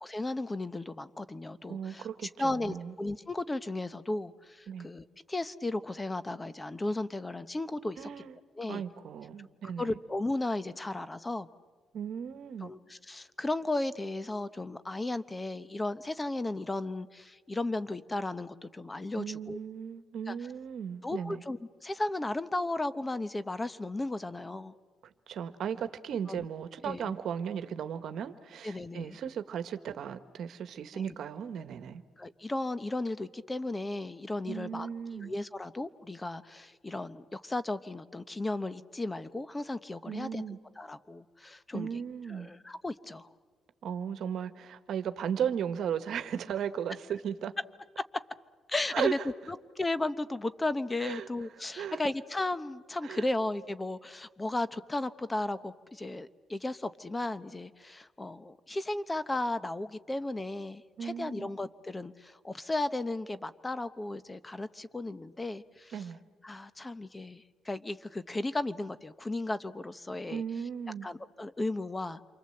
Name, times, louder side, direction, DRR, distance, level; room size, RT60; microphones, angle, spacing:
voice 1, 0.0-8.1 8.6-8.8 9.8-11.5 12.6-19.6 20.3-20.4 21.0-24.7 26.3-26.5 26.8-27.1 28.6-29.2 32.2-34.9 35.1-40.4 40.8-41.9 42.3-43.3 48.7-49.2 49.5-65.9 66.4-70.4 71.0-72.2, left 2 dB, 20° left, 13 dB, 0.9 m, -35 dB
voice 2, 1.7-2.9 4.7-4.9 8.0-8.4 8.7-10.0 11.9-12.7 19.1-21.4 25.0-32.0 34.5-35.3 40.1-40.6 41.7-42.5 43.8-47.5 48.9-49.1 51.0-51.3 51.8-52.0 53.0-53.3 61.0-61.5 65.9-66.2 70.3-71.1, right 8 dB, 70° right, 11 dB, 1.3 m, -36 dB
28.5 x 24.0 x 7.8 m, 1.5 s
cardioid pair, 90°, 0 cm